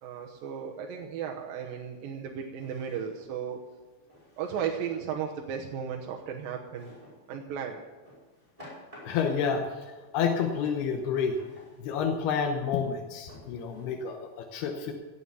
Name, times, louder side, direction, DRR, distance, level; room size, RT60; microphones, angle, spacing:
voice 1, 0.0-3.6 4.4-6.9 7.3-7.8, right 7 dB, 75° right, 0 dB, 2.7 m, -35 dB
Drawer open or close, 1.2-1.3 2.5-3.4 4.1-4.9 6.7-7.2 8.1-9.5 11.4-11.8 12.5-12.6 13.3-13.8, left 1 dB, 10° right, 5.2 m, -51 dB
voice 2, 9.1-11.4 11.8-14.9, left 6 dB, 85° left, 4 dB, 3.0 m, -29 dB
16.5 x 9.1 x 6.9 m, 1.3 s
omnidirectional pair, 4.5 m